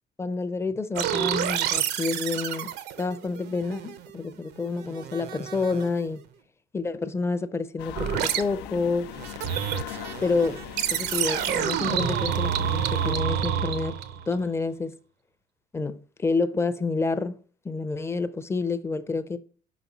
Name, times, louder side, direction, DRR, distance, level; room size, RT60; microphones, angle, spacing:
voice 1, 0.2-2.7 3.0-6.2 6.7-9.1 10.2-10.6 10.9-14.0 14.3-14.9 15.7-17.4 17.6-19.4, left 4 dB, 15° left, 0.5 m, -28 dB
sound 1, 1.0-4.2 4.5-6.0 8.0-8.4 9.1-14.3, right 9 dB, 80° right, 0.6 m, -29 dB
sound 2, 7.8-13.1, left 12 dB, 85° left, 0.4 m, -40 dB
5.3 x 4.1 x 5.9 m
cardioid pair, 110°, 17 cm